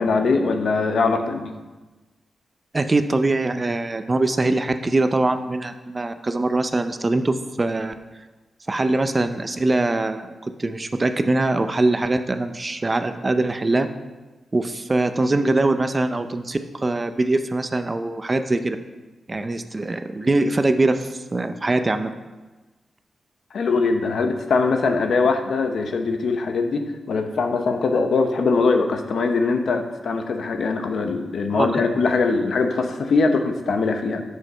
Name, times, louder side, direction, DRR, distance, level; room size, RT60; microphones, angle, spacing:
voice 1, 0.0-1.5 23.5-34.2, left 4 dB, 70° left, 6 dB, 0.9 m, -22 dB
voice 2, 2.7-7.9 8.7-10.3 10.6-13.9 14.5-18.8 19.3-22.1 31.5-31.8, right 2 dB, 25° right, 9 dB, 0.5 m, -22 dB
7.9 x 6.4 x 5.5 m, 1.2 s
wide cardioid pair, 110°, 0 cm